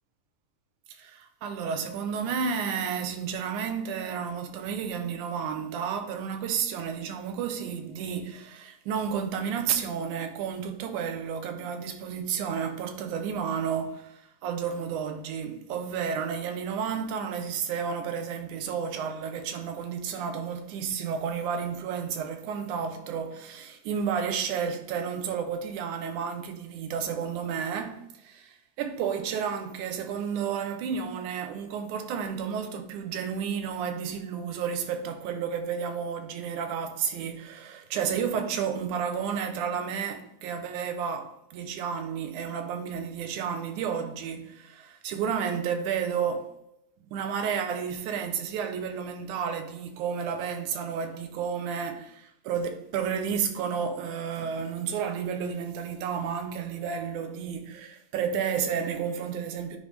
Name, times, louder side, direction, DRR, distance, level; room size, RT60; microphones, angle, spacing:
voice 1, 0.9-46.5 47.1-59.8, right 7 dB, 80° right, 2.3 m, -31 dB
9.3 x 5.1 x 3.4 m
omnidirectional pair, 3.6 m